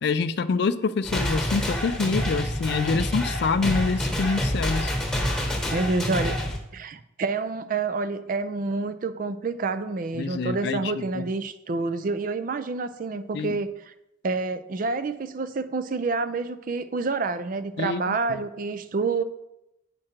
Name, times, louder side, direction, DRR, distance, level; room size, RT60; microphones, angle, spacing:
voice 1, 0.0-4.9 10.1-11.3 13.3-13.5 17.8-18.4, left 4 dB, 60° left, 14 dB, 0.4 m, -26 dB
sound 1, 1.0-6.6, left 1 dB, 5° left, 1.1 m, -27 dB
voice 2, 5.7-6.3 6.7-13.7 14.2-19.2, right 3 dB, 45° right, 12 dB, 0.4 m, -28 dB
7.4 x 5.0 x 4.4 m, 0.88 s
head